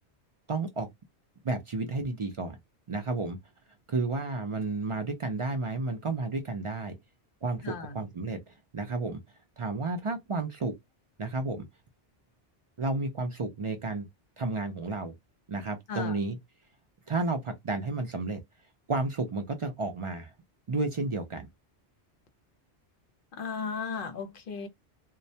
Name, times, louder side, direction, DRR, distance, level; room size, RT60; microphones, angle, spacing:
voice 1, 0.5-0.9 1.4-2.6 2.9-3.4 3.9-7.0 7.4-9.2 9.6-10.7 11.2-11.7 12.8-14.1 14.4-15.1 15.5-16.4 17.1-18.4 18.9-20.3 20.7-21.5, right 3 dB, 55° right, 0.3 m, -32 dB
voice 2, 7.6-8.0 15.9-16.2 23.3-24.7, left 5 dB, 60° left, 0.7 m, -35 dB
2.2 x 2.1 x 2.6 m
omnidirectional pair, 1.1 m